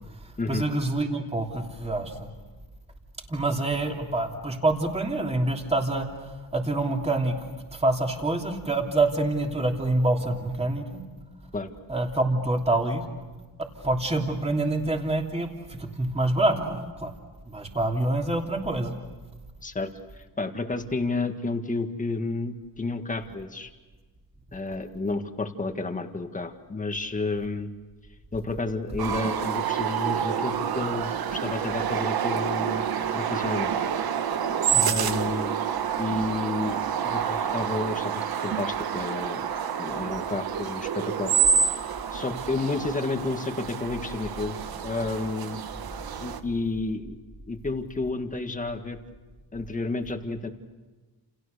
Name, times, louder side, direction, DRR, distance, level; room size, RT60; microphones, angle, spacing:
voice 1, 0.5-2.3 3.3-7.3 7.7-11.0 11.9-13.0 13.8-17.1 17.5-18.9 34.7-35.0, right 2 dB, 15° right, 2 dB, 3.1 m, -26 dB
voice 2, 20.1-23.7 24.5-27.7 28.3-33.8 34.8-35.5 36.0-36.8 37.0-39.5 39.8-41.3 42.1-44.6 44.8-45.6 46.2-47.2 47.5-49.0 49.5-50.5, left 3 dB, 20° left, 6 dB, 1.8 m, -31 dB
sound 1, 29.0-46.4, right 7 dB, 70° right, 1.4 m, -28 dB
30.0 x 28.5 x 6.7 m, 1.3 s
wide cardioid pair, 150°, 39 cm